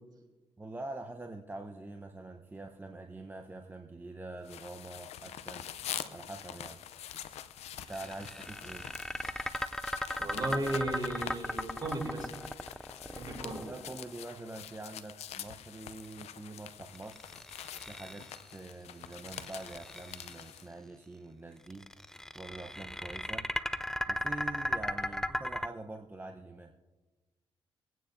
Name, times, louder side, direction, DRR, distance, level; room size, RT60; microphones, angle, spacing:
voice 1, 0.6-5.7 6.1-6.8 7.7-8.9 13.5-17.3 17.9-21.9 22.3-23.5 24.1-26.7, right 2 dB, 20° right, 3 dB, 0.9 m, -45 dB
sound 1, 4.5-20.7, left 11 dB, 85° left, 0.6 m, -45 dB
sound 2, 7.9-14.1 16.9-18.5 19.1-20.4 21.7-25.7, left 1 dB, 5° left, 0.4 m, -37 dB
voice 2, 10.2-12.3 13.0-13.7, right 2 dB, 40° right, 1 dB, 3.2 m, -36 dB
23.5 x 9.2 x 2.7 m, 1.2 s
cardioid pair, 65°, 11 cm